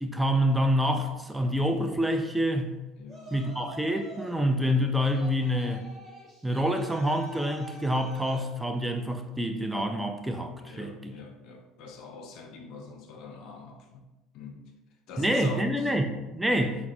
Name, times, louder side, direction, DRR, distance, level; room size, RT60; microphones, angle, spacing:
voice 1, 0.0-2.7 3.3-5.9 6.4-10.9 15.2-16.8, equal, 10° right, 5 dB, 0.3 m, -27 dB
voice 2, 3.0-3.3 10.6-14.1 14.3-14.6 15.1-15.9 16.5-16.8, left 4 dB, 65° left, 4 dB, 0.4 m, -44 dB
Yell, 3.1-4.4 5.1-8.5, equal, 35° right, 1.1 m, -47 dB
3.2 x 2.0 x 2.5 m, 1.0 s
hypercardioid pair, 75°, 0 cm